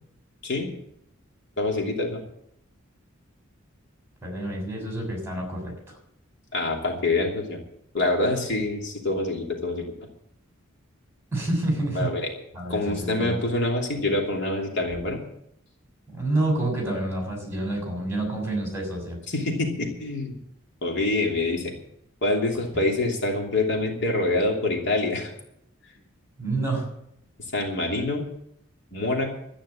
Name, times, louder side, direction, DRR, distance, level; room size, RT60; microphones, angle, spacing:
voice 1, 1.6-2.2 6.5-7.6 7.9-9.8 11.9-12.3 12.7-15.2 19.3-20.4 20.8-21.7 22.2-25.3 27.5-28.2 28.9-29.3, left 2 dB, 60° left, 1 dB, 2.9 m, -26 dB
voice 2, 4.2-6.0 11.3-12.2 12.5-13.4 16.1-19.2 22.7-22.8 26.4-26.9, right 2 dB, 15° right, 1 dB, 6.6 m, -28 dB
13.0 x 10.0 x 8.6 m, 0.74 s
head